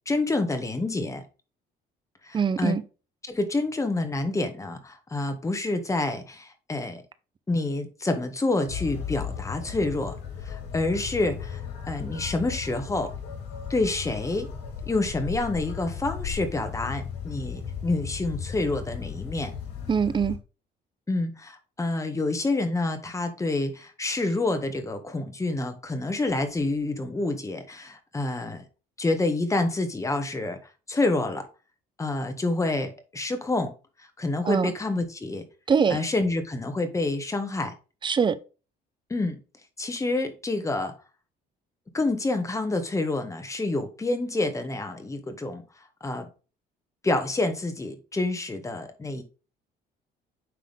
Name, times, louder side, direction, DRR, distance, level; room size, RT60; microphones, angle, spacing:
voice 1, 0.0-1.2 2.2-2.8 3.3-7.0 7.5-10.2 10.4-11.6 11.9-13.1 13.7-14.5 14.8-19.5 21.1-28.6 29.0-30.6 30.9-31.4 32.0-33.7 34.2-35.4 35.9-37.7 39.1-39.4 39.8-40.9 41.9-45.6 46.0-46.3 47.0-49.2, left 2 dB, 20° left, 1.5 m, -28 dB
voice 2, 2.3-2.8 19.9-20.4 34.5-34.7 35.7-36.0 38.0-38.4, right 6 dB, 30° right, 0.6 m, -23 dB
sound 1, 8.7-20.4, left 7 dB, 80° left, 3.2 m, -36 dB
9.3 x 3.7 x 3.5 m
cardioid pair, 110°, 17 cm